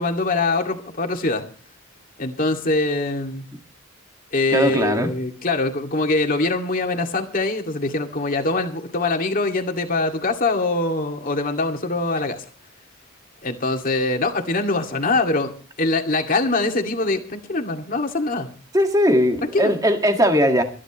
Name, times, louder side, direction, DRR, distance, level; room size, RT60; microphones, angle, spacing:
voice 1, 0.0-1.4 2.2-3.5 4.3-12.4 13.4-18.5 19.5-19.7, left 2 dB, 40° left, 4 dB, 2.2 m, -23 dB
voice 2, 4.5-5.1 18.7-20.6, equal, 15° right, 5 dB, 1.8 m, -19 dB
25.0 x 11.0 x 3.1 m, 0.40 s
head